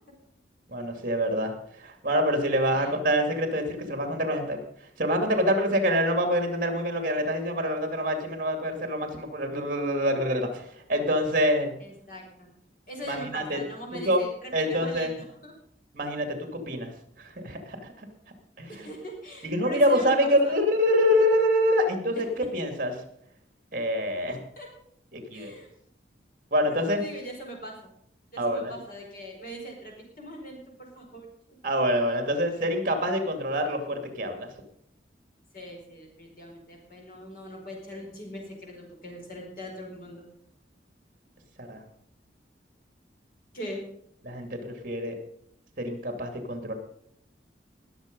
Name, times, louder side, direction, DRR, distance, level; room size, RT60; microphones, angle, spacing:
voice 1, 0.7-4.6 5.0-11.7 13.1-13.6 13.9-14.2 14.5-15.1 15.9-16.9 17.2-18.1 18.6-18.9 19.4-22.9 23.7-24.4 25.1-25.5 26.5-27.0 28.4-28.7 31.6-34.5 41.6-41.8 44.2-45.1 45.8-46.7, equal, 45° right, 6 dB, 2.4 m, -26 dB
voice 2, 11.8-12.5 12.9-15.5 18.7-20.5 22.1-22.7 24.6-24.7 25.3-25.7 26.6-27.9 28.3-31.3 35.5-40.3 43.5-43.8, equal, 50° left, 0 dB, 4.6 m, -41 dB
21.0 x 7.2 x 5.3 m, 0.71 s
head